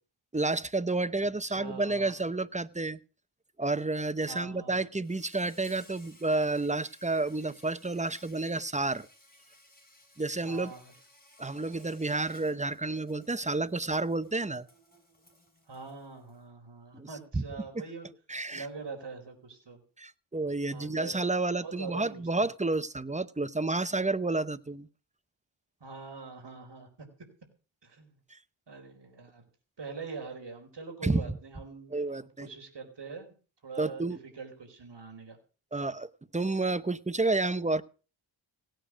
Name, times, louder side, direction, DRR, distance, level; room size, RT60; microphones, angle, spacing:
voice 1, 0.3-3.0 3.6-9.1 10.2-10.7 11.4-14.7 16.9-17.1 17.3-17.4 18.3-18.7 20.0-24.9 28.3-28.4 31.0-31.4 31.9-32.5 33.8-34.2 35.7-37.8, right 2 dB, 15° right, 0.8 m, -30 dB
voice 2, 1.4-2.1 4.3-4.8 10.4-10.9 15.7-18.1 18.5-19.8 20.7-21.1 21.6-22.2 25.8-27.1 27.8-28.1 28.7-29.5 29.8-31.9 32.4-33.3 33.6-35.4, right 4 dB, 60° right, 4.4 m, -43 dB
Insect, 5.0-16.4, left 1 dB, 20° left, 6.4 m, -59 dB
17.0 x 9.2 x 6.2 m
wide cardioid pair, 85°, 47 cm